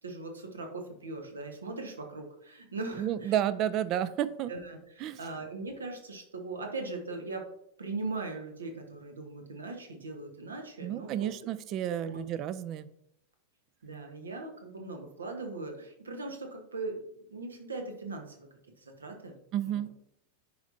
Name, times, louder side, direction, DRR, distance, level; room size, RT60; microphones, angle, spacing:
voice 1, 0.0-3.3 4.5-7.5 7.8-11.3 12.0-12.2 13.8-17.0 17.3-18.5 18.8-19.3 19.6-19.8, right 3 dB, 70° right, 4 dB, 1.3 m, -39 dB
voice 2, 3.0-4.5 5.0-5.2 10.8-12.9 19.5-19.9, right 11 dB, 35° right, 15 dB, 0.4 m, -31 dB
10.5 x 5.2 x 2.7 m, 0.75 s
figure-of-eight pair, 90°, 0 cm